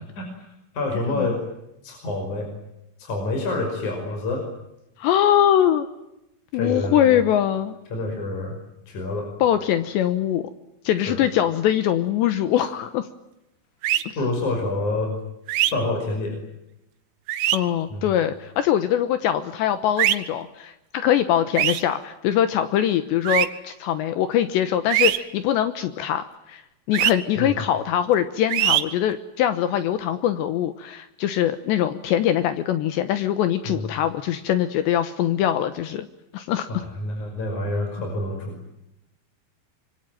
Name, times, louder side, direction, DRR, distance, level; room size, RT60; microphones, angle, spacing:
voice 1, 0.7-1.4 1.8-2.5 3.0-4.4 6.5-7.2 7.9-8.6 8.9-9.3 11.1-11.2 12.6-12.7 14.2-15.1 15.7-16.4 17.9-18.1 27.4-27.6 33.6-33.8 36.7-38.6, left 2 dB, 40° left, 2 dB, 6.7 m, -27 dB
voice 2, 5.0-5.9 6.5-7.8 9.4-10.5 10.8-13.1 17.5-26.6 26.9-36.1 36.3-36.7, left 11 dB, 75° left, 11 dB, 3.2 m, -22 dB
sound 1, 13.8-14.0 15.5-15.7 17.3-17.6 20.0-20.2 21.6-21.8 23.3-23.5 24.9-25.2 26.9-27.1 28.5-28.8, right 13 dB, 85° right, 3.7 m, -20 dB
26.0 x 24.0 x 9.1 m, 0.88 s
omnidirectional pair, 5.4 m